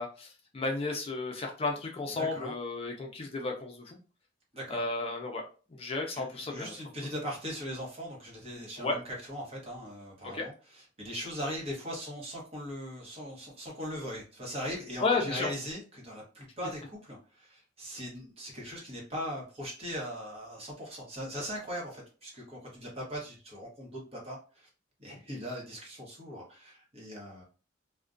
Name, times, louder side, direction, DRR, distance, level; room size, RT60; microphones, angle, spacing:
voice 1, 0.0-4.0 4.7-5.4 5.8-6.7 8.8-9.0 10.2-10.5 15.0-15.5, left 3 dB, 30° left, 1 dB, 0.4 m, -33 dB
voice 2, 2.2-2.5 4.5-4.8 6.1-9.0 9.3-24.7 25.0-27.4, equal, 35° right, -2 dB, 0.9 m, -40 dB
2.3 x 2.1 x 2.4 m, 0.35 s
head